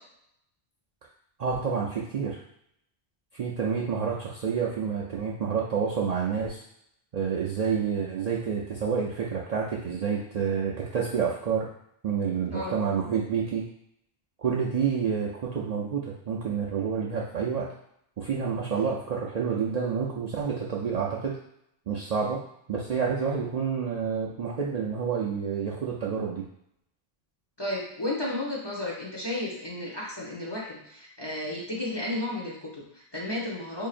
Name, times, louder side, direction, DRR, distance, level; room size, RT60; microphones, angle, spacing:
voice 1, 1.4-2.4 3.3-6.6 7.1-11.7 12.0-13.6 14.4-17.7 18.2-21.4 21.9-22.4 22.7-26.4, right 6 dB, 55° right, -4 dB, 0.5 m, -28 dB
voice 2, 27.6-33.9, left 1 dB, 25° left, -5 dB, 0.8 m, -33 dB
4.6 x 2.8 x 2.5 m, 0.74 s
omnidirectional pair, 1.1 m